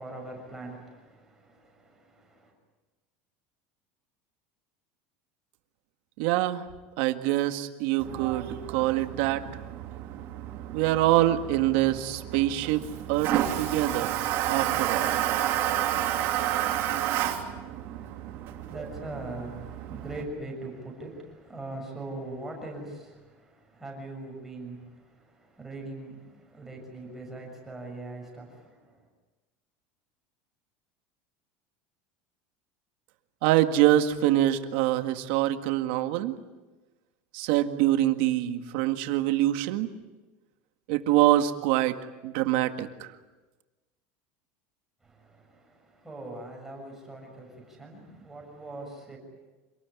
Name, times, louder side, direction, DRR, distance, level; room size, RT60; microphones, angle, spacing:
voice 1, 0.0-2.5 17.5-29.0 45.0-49.2, right 2 dB, 5° right, 6.7 m, -42 dB
voice 2, 6.2-6.6 7.0-9.4 10.7-14.1 14.5-15.2 33.4-36.3 37.3-39.9 40.9-43.1, right 14 dB, 65° right, 1.8 m, -25 dB
Toilet flush, 8.0-20.2, right 12 dB, 45° right, 3.1 m, -31 dB
27.5 x 19.5 x 9.8 m
cardioid pair, 170°, 6 cm